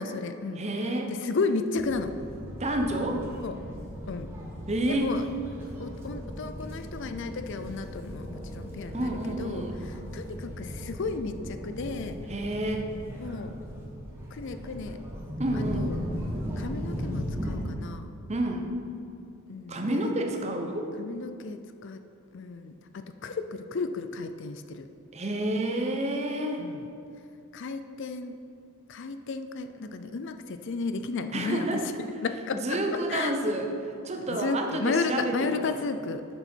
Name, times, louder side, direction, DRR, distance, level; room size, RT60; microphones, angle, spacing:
voice 1, 0.0-0.7 1.1-2.2 3.4-3.6 4.1-4.3 4.9-5.3 5.8-12.2 13.2-13.6 14.3-15.0 15.5-16.0 16.6-18.1 19.5-20.2 21.0-22.0 22.3-24.9 26.6-26.9 27.5-28.4 28.9-31.9 32.2-32.8 33.1-33.3 34.2-36.3, left 4 dB, 55° left, 9 dB, 0.4 m, -33 dB
voice 2, 0.6-1.1 2.6-3.2 4.7-5.1 8.9-9.7 12.3-12.9 15.4-15.9 18.3-18.7 19.7-20.9 25.1-26.6 31.3-31.8 32.6-33.7 34.0-35.4, right 1 dB, 30° right, 3 dB, 0.8 m, -29 dB
sound 1, 1.8-17.6, equal, 10° right, 1.2 m, -37 dB
9.8 x 7.0 x 4.4 m, 2.6 s
head